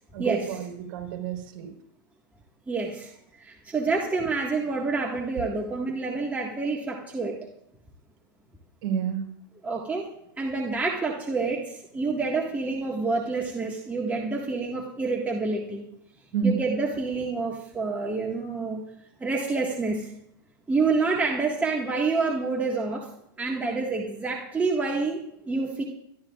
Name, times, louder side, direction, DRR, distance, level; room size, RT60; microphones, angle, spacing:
voice 1, 0.1-1.7 8.8-9.3 16.3-16.6, right 7 dB, 55° right, 2 dB, 4.0 m, -29 dB
voice 2, 2.7-3.1 3.4-7.4 9.6-10.1 10.4-15.8 16.4-18.8 19.2-20.1 20.7-23.1 23.4-25.8, right 3 dB, 15° right, -2 dB, 1.7 m, -28 dB
28.5 x 12.0 x 2.4 m, 0.76 s
hypercardioid pair, 115°, 11 cm